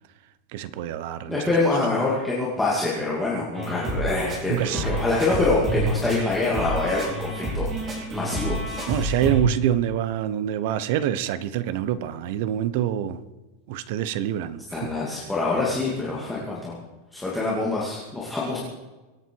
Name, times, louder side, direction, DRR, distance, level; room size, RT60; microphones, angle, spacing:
voice 1, 0.5-1.4 4.5-5.0 8.9-13.2 13.7-14.9, right 11 dB, 50° right, 1.0 m, -26 dB
voice 2, 1.3-8.6 14.7-16.8 17.1-18.6, left 2 dB, 5° left, 2.4 m, -25 dB
sound 1, 3.5-9.4, right 1 dB, 20° right, 4.2 m, -29 dB
24.5 x 9.1 x 4.7 m
supercardioid pair, 175°, 0 cm